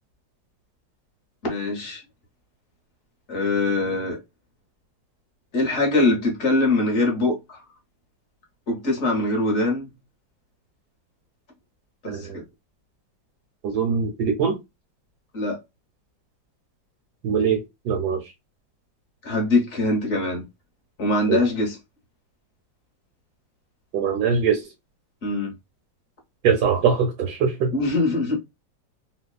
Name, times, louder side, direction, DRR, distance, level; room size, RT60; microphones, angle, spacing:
voice 1, 1.4-2.0 3.3-4.2 5.5-7.6 8.7-9.9 12.0-12.4 15.3-15.6 19.2-20.4 21.0-21.8 25.2-25.5 27.7-28.4, left 2 dB, 45° left, 1.1 m, -23 dB
voice 2, 12.0-12.4 13.6-14.6 17.2-18.2 21.3-21.4 23.9-24.6 26.4-27.7, right 6 dB, 70° right, 1.1 m, -22 dB
3.3 x 2.1 x 2.2 m
omnidirectional pair, 2.0 m